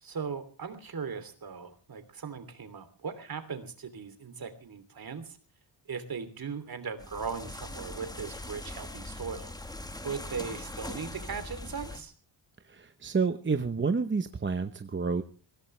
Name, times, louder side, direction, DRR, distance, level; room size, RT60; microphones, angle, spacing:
voice 1, 0.0-5.4 5.9-9.5 10.0-12.1, right 5 dB, 50° right, 10 dB, 3.0 m, -38 dB
sound 1, 7.0-12.0, left 1 dB, 10° left, 1.4 m, -41 dB
voice 2, 12.7-15.2, right 4 dB, 25° right, 8 dB, 0.9 m, -29 dB
23.5 x 16.5 x 3.3 m, 0.40 s
wide cardioid pair, 165°, 47 cm